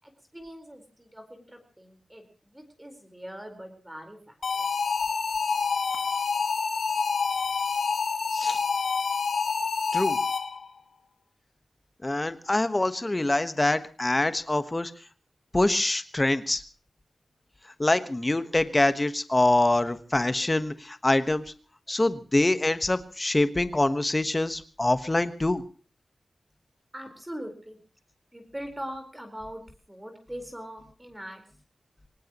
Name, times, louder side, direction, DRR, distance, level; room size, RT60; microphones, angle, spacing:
voice 1, 0.0-4.7 26.9-27.8 28.3-29.6 29.9-31.4, equal, 10° right, 5 dB, 4.4 m, -41 dB
sound 1, 4.4-10.7, left 5 dB, 90° left, 2.0 m, -27 dB
voice 2, 12.0-14.9 15.5-16.6 17.8-21.4 21.9-25.6, left 2 dB, 20° left, 11 dB, 1.3 m, -25 dB
23.5 x 19.0 x 3.0 m, 0.37 s
wide cardioid pair, 145°, 0 cm